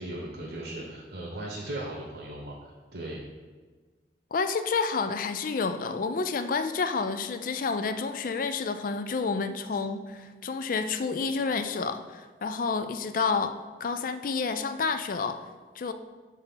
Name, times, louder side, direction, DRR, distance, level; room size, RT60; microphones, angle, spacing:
voice 1, 0.0-3.2, right 1 dB, 80° right, -3 dB, 1.1 m, -37 dB
voice 2, 4.3-15.4 15.8-15.9, left 4 dB, 50° left, 10 dB, 0.4 m, -29 dB
5.4 x 3.7 x 5.7 m, 1.4 s
head